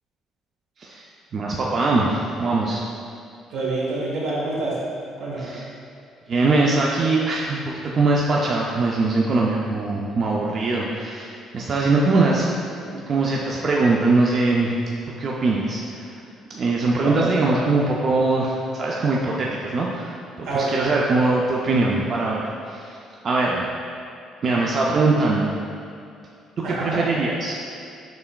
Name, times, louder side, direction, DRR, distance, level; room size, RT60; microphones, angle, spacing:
voice 1, 1.3-2.8 5.4-5.6 6.3-12.5 12.8-14.7 15.2-16.1 16.5-23.0 23.2-23.7 24.4-25.5 26.6-27.6, right 3 dB, 35° right, -3 dB, 0.3 m, -22 dB
voice 2, 3.5-4.8 5.2-5.5 17.0-17.6 20.4-20.7 26.6-27.0, right 2 dB, 75° right, -5 dB, 1.0 m, -27 dB
5.7 x 3.3 x 2.2 m, 2.5 s
cardioid pair, 160°, 0 cm